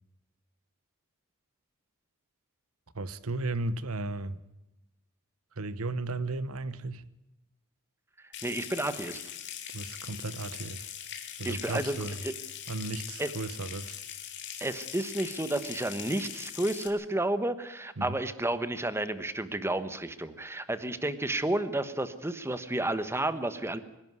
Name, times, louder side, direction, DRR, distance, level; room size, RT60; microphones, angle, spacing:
voice 1, 2.9-4.4 5.6-7.0 9.7-10.9 11.4-12.2 12.7-14.0 18.0-18.2, right 2 dB, 70° right, 1.2 m, -35 dB
Water tap faucet / Sink (filling or washing) / Trickle dribble, 8.3-16.9, left 9 dB, 55° left, 2.6 m, -41 dB
voice 2, 8.4-9.2 11.4-12.0 12.2-12.3 13.2-13.3 14.6-23.8, right 1 dB, 10° right, 1.2 m, -31 dB
24.5 x 11.5 x 9.6 m
head